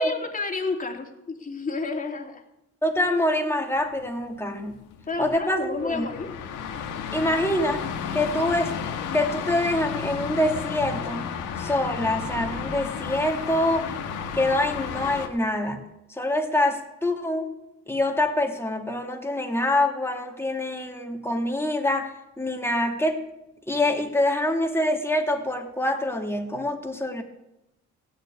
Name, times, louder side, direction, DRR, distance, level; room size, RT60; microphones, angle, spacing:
voice 1, 0.0-2.4 5.1-6.4, left 4 dB, 25° left, 2 dB, 2.6 m, -31 dB
voice 2, 2.8-4.8 5.2-6.1 7.1-7.8 8.1-8.7 9.1-11.3 11.6-13.9 14.3-15.8 16.1-17.5 17.9-23.2 23.7-27.2, left 1 dB, 10° left, 2 dB, 2.2 m, -25 dB
sound 1, 3.8-15.3, left 7 dB, 90° left, 1.7 m, -33 dB
15.5 x 6.7 x 9.6 m, 0.91 s
cardioid pair, 90°, 30 cm